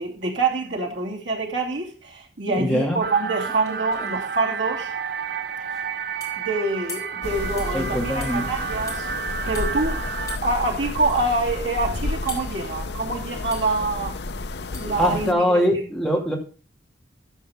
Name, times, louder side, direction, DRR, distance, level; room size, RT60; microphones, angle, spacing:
voice 1, 0.0-4.9 6.4-9.1 9.5-10.0 10.4-14.1 14.7-15.6, right 3 dB, 85° right, 0 dB, 2.9 m, -26 dB
voice 2, 2.5-3.0 7.7-8.5 15.0-16.4, equal, ahead, -1 dB, 2.2 m, -22 dB
sound 1, 3.0-10.4, right 6 dB, 60° right, 0.5 m, -31 dB
sound 2, 3.1-3.2 3.4-4.4 6.2-6.4 6.9-7.2 7.6-7.8 8.2-8.4 8.9-9.0 9.5-9.7 10.3-10.5 11.1-11.2 12.3-12.6 13.5-13.8 14.7-15.0, left 3 dB, 20° left, 3.1 m, -38 dB
sound 3, 7.2-15.3, left 2 dB, 65° left, 0.7 m, -31 dB
13.0 x 7.2 x 3.6 m, 0.37 s
head